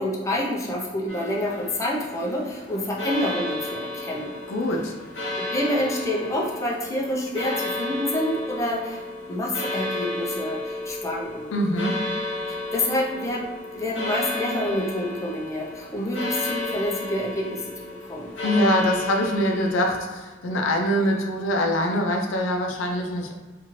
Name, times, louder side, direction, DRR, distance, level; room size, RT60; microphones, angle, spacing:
voice 1, 0.0-4.3 5.4-9.0 9.3-11.5 12.7-13.5 13.7-18.3, left 1 dB, 15° left, -3 dB, 0.4 m, -27 dB
sound 1, 1.1-20.0, left 2 dB, 65° left, 1.0 m, -33 dB
voice 2, 4.5-4.9 11.5-11.9 18.4-23.3, equal, 85° left, 2 dB, 0.4 m, -23 dB
2.7 x 2.4 x 2.9 m, 1.3 s
head